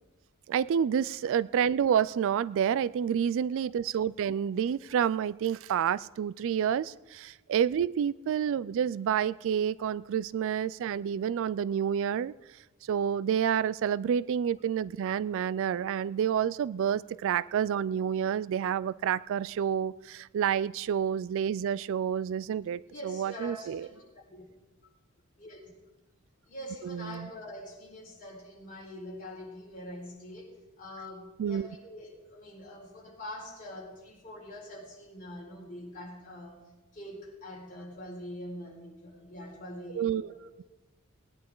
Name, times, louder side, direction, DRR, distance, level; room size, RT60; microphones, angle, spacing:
voice 1, 0.5-12.3 12.8-23.9 26.8-27.3 31.4-31.7 39.9-40.3, right 8 dB, 60° right, 19 dB, 0.3 m, -29 dB
voice 2, 22.9-24.0 24.3-24.4 25.4-25.6 26.4-40.7, left 1 dB, 40° left, -4 dB, 4.3 m, -44 dB
19.5 x 10.5 x 3.8 m, 1.1 s
head